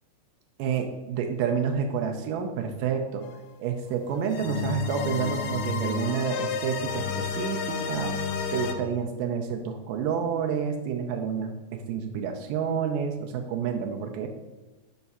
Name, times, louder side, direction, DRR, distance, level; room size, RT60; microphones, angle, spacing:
voice 1, 0.6-3.3 3.6-8.1 8.5-14.3, right 7 dB, 80° right, 4 dB, 2.1 m, -29 dB
sound 1, 3.2-3.3 4.3-8.7, left 5 dB, 80° left, 1.9 m, -31 dB
6.0 x 5.7 x 5.4 m, 1.1 s
omnidirectional pair, 4.2 m